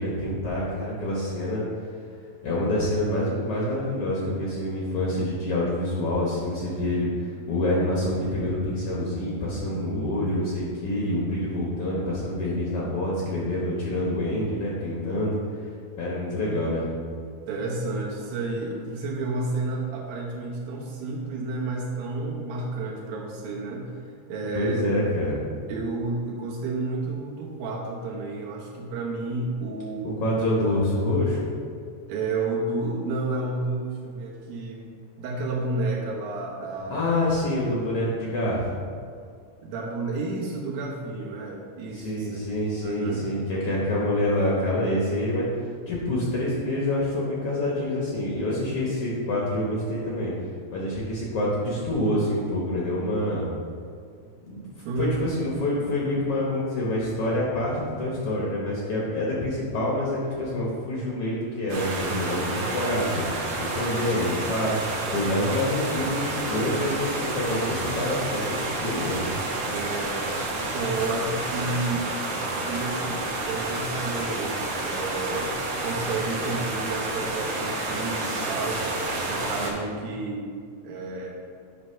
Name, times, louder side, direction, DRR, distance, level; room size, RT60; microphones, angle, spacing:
voice 1, 0.0-1.7 2.4-15.4 16.0-16.9 24.5-25.4 30.2-31.5 36.9-38.8 41.9-45.5 45.9-50.3 50.7-53.5 54.5-54.7 55.0-69.3, left 1 dB, 80° left, -5 dB, 1.3 m, -27 dB
voice 2, 17.5-23.9 24.3-24.8 25.7-30.2 30.6-30.8 32.1-34.8 35.2-37.1 39.6-42.4 42.8-43.3 54.9-55.2 69.7-70.2 70.5-72.1 72.7-75.5 75.8-78.9 79.1-80.5 80.8-81.3, right 3 dB, 75° right, -3 dB, 2.9 m, -31 dB
sound 1, 61.7-79.7, right 2 dB, 60° right, 1.7 m, -30 dB
9.6 x 3.3 x 5.6 m, 2.2 s
omnidirectional pair, 4.2 m